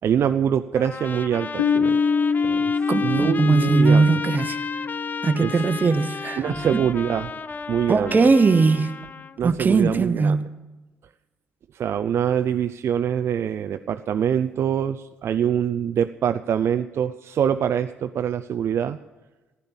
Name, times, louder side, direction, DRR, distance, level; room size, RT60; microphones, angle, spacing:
voice 1, 0.0-2.0 2.4-2.7 3.0-4.1 5.4-5.5 6.4-7.3 7.7-8.2 9.4-10.4 11.7-19.0, right 9 dB, 55° right, 0.5 m, -24 dB
Trumpet, 0.7-9.4, left 5 dB, 35° left, 0.5 m, -34 dB
Piano, 1.6-7.0, left 5 dB, 85° left, 0.5 m, -26 dB
voice 2, 2.9-4.6 5.2-6.8 7.9-9.1 9.4-10.5, right 4 dB, 35° right, 1.0 m, -20 dB
15.5 x 9.8 x 7.2 m
hypercardioid pair, 45°, 5 cm